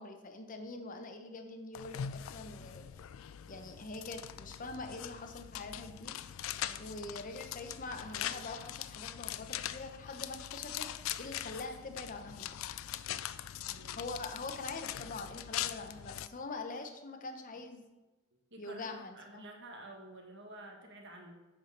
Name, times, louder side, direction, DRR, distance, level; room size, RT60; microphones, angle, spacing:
voice 1, 0.0-2.8 3.5-6.1 6.8-10.9 11.2-12.5 13.9-17.8 18.6-19.4, left 3 dB, 40° left, 6 dB, 0.8 m, -44 dB
sound 1, 1.8-16.3, left 11 dB, 75° left, 0.3 m, -42 dB
voice 2, 6.6-7.1 13.6-14.0 18.5-21.4, right 1 dB, 60° right, 1 dB, 1.5 m, -51 dB
8.0 x 4.6 x 5.8 m, 1.1 s
head